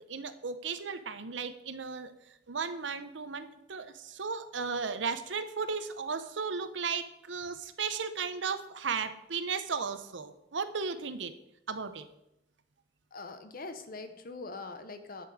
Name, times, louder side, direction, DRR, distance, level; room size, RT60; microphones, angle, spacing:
voice 1, 0.1-11.3 11.7-12.1, right 5 dB, 90° right, 11 dB, 0.8 m, -35 dB
voice 2, 13.1-15.3, left 3 dB, 50° left, 9 dB, 1.0 m, -42 dB
11.0 x 6.9 x 4.9 m, 0.86 s
head